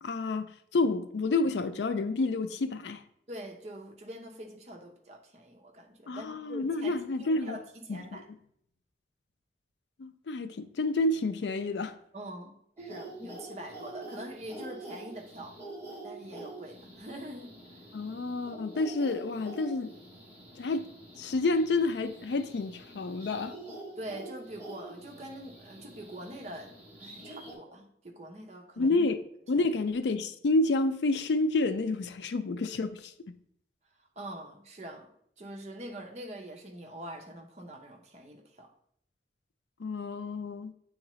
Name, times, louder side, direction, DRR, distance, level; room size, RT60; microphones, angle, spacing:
voice 1, 0.0-3.0 6.1-7.6 7.9-8.2 10.0-12.0 17.9-19.9 20.6-20.9 21.2-23.6 28.8-33.4 39.8-40.7, left 3 dB, 80° left, 0.4 m, -29 dB
voice 2, 3.3-8.3 12.1-15.6 16.0-17.8 24.0-26.7 27.0-28.9 29.5-29.7 34.2-35.1 35.4-38.7, right 1 dB, 40° right, 0.7 m, -44 dB
sound 1, 12.8-27.5, right 2 dB, 15° right, 1.2 m, -46 dB
8.6 x 3.8 x 3.1 m
head